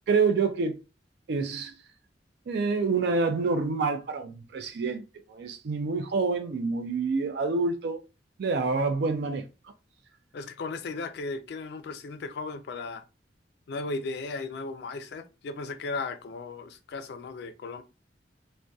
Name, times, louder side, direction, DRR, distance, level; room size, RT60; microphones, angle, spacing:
voice 1, 0.1-0.8 1.3-1.8 2.5-5.0 5.3-8.0 8.4-9.4, right 4 dB, 65° right, 0.3 m, -27 dB
voice 2, 10.3-13.0 13.7-17.8, left 3 dB, 65° left, 0.3 m, -36 dB
2.5 x 2.1 x 2.2 m
head